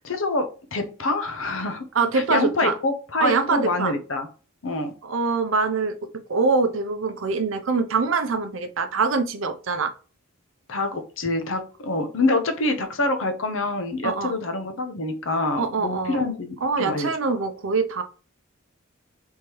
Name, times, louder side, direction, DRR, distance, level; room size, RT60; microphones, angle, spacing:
voice 1, 0.0-1.8 2.1-4.3 4.6-4.9 10.7-16.5 16.8-17.1, left 2 dB, 65° left, 7 dB, 0.7 m, -26 dB
voice 2, 1.9-2.7 3.2-3.9 5.0-6.0 6.3-9.9 14.0-14.4 15.6-16.2 16.6-18.0, right 4 dB, 65° right, 8 dB, 0.6 m, -24 dB
3.6 x 3.1 x 4.6 m, 0.37 s
head